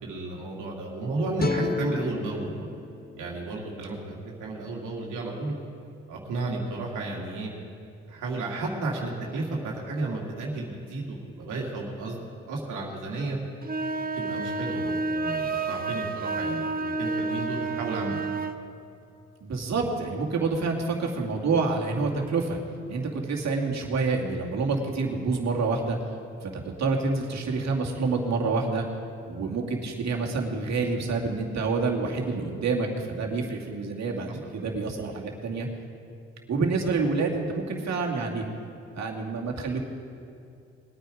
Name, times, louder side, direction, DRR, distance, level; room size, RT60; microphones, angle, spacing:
voice 1, 0.0-2.7 3.2-5.5 6.1-7.5 8.1-12.2 12.5-13.4 14.1-18.2 34.3-34.4, right 2 dB, 80° right, -2 dB, 2.3 m, -32 dB
sound 1, 1.4-4.6, left 5 dB, 30° left, 1.2 m, -34 dB
sound 2, 13.6-18.6, right 3 dB, 30° right, 1.0 m, -30 dB
voice 2, 19.4-22.6 22.9-26.0 26.4-28.9 29.3-35.7 36.5-38.4 38.9-39.8, right 4 dB, 60° right, 0 dB, 2.4 m, -28 dB
20.5 x 9.4 x 5.0 m, 2.6 s
supercardioid pair, 55°, 31 cm